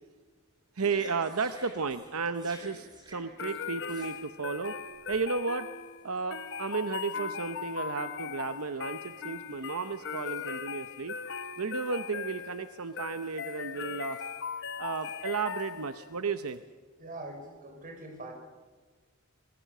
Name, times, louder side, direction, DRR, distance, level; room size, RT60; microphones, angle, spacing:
sound 1, 0.8-5.2 5.9-6.1 6.4-6.8 7.5-7.7 8.6-8.7 9.0-12.0 12.3-13.7 14.0-14.3 14.9-15.7 16.3-16.6, right 1 dB, 20° right, 5.2 m, -53 dB
voice 1, 0.8-4.8 5.1-5.7 6.0-11.2 11.6-14.2 14.8-16.6, right 5 dB, 85° right, 11 dB, 0.9 m, -33 dB
sound 2, 3.4-16.2, left 7 dB, 60° left, 0.9 m, -39 dB
voice 2, 17.0-18.3, right 2 dB, 40° right, 3 dB, 5.4 m, -43 dB
26.5 x 20.5 x 6.7 m, 1.4 s
head